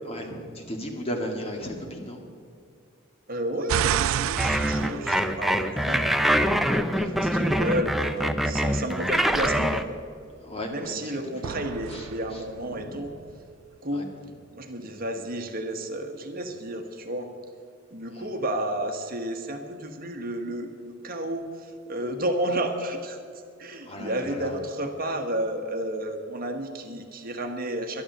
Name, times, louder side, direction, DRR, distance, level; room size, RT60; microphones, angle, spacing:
voice 1, 0.0-2.2 6.6-7.1 10.4-11.1 11.4-11.6 11.9-12.4 12.7-13.0 13.9-14.0 18.1-18.3 23.8-24.6, equal, 30° left, 1 dB, 2.1 m, -36 dB
voice 2, 3.3-6.5 7.1-10.0 10.7-13.1 13.8-14.1 14.5-17.3 17.9-23.2 23.6-28.0, right 1 dB, 45° right, 5 dB, 1.3 m, -31 dB
sound 1, 3.7-6.1 11.4-13.5, right 10 dB, 80° right, 0.3 m, -30 dB
sound 2, 4.4-9.8, equal, ahead, 0.6 m, -24 dB
12.0 x 11.5 x 7.9 m, 2.3 s
head